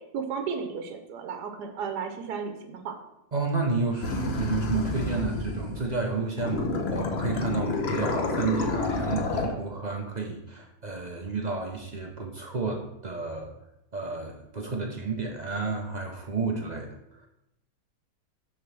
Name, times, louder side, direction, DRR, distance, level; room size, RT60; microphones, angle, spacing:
voice 1, 0.0-2.9, right 6 dB, 85° right, 6 dB, 1.4 m, -34 dB
voice 2, 3.3-13.5 13.9-16.9, right 4 dB, 50° right, 1 dB, 0.5 m, -31 dB
sound 1, 4.0-6.0 6.4-9.5, left 3 dB, 50° left, 0.9 m, -29 dB
6.5 x 3.7 x 6.0 m, 0.85 s
omnidirectional pair, 1.7 m